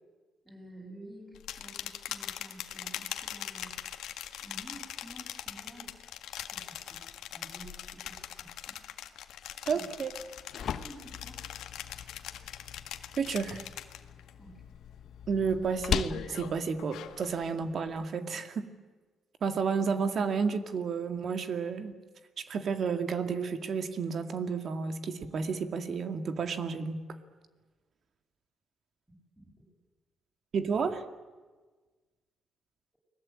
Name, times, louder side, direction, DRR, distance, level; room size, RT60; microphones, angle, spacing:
voice 1, 0.4-3.8 4.4-6.0 6.5-7.0 7.3-8.8 9.7-9.9 10.6-11.4 14.4-14.7 29.1-29.7, right 1 dB, ahead, -4 dB, 7.4 m, -51 dB
sound 1, 1.3-14.3 14.7-15.1 15.5-17.4, left 11 dB, 85° left, 1.7 m, -42 dB
voice 2, 9.7-10.1 13.2-13.6 15.3-18.7 19.4-21.9 22.4-27.0 30.5-31.0, right 5 dB, 55° right, 8 dB, 2.3 m, -31 dB
sound 2, 10.1-18.1, left 8 dB, 65° left, 1.2 m, -39 dB
30.0 x 21.0 x 8.9 m, 1.4 s
cardioid pair, 90°, 0 cm